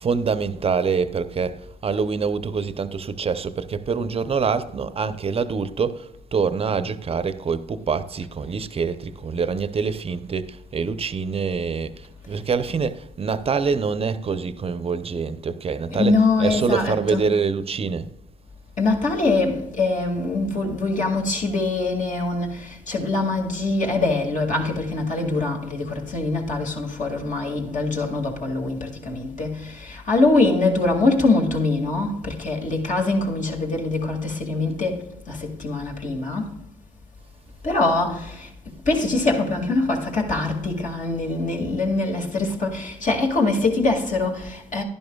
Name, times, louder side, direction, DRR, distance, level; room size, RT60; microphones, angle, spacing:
voice 1, 0.0-11.9 12.3-18.1, right 5 dB, 35° right, 0.7 m, -25 dB
voice 2, 15.9-17.2 18.8-36.6 37.6-38.5 38.9-44.8, left 3 dB, 50° left, 2.3 m, -23 dB
11.0 x 11.0 x 2.3 m
cardioid pair, 75°, 16 cm